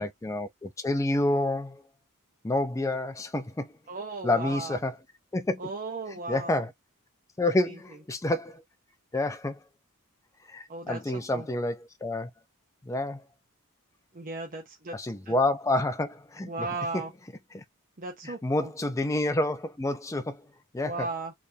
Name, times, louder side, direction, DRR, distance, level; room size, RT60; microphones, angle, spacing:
voice 1, 0.0-1.8 2.4-3.7 4.2-4.9 5.3-5.6 6.3-6.7 7.4-8.6 9.1-9.6 10.5-12.3 12.8-13.2 14.9-16.7 17.5-17.6 18.2-20.4 20.7-21.1, left 2 dB, 15° left, 0.4 m, -28 dB
voice 2, 3.9-4.8 5.6-6.6 7.4-7.8 10.7-11.5 14.1-15.0 15.3-15.4 16.4-17.1 18.0-18.7 20.8-21.3, right 3 dB, 40° right, 0.8 m, -36 dB
4.2 x 3.4 x 2.7 m
head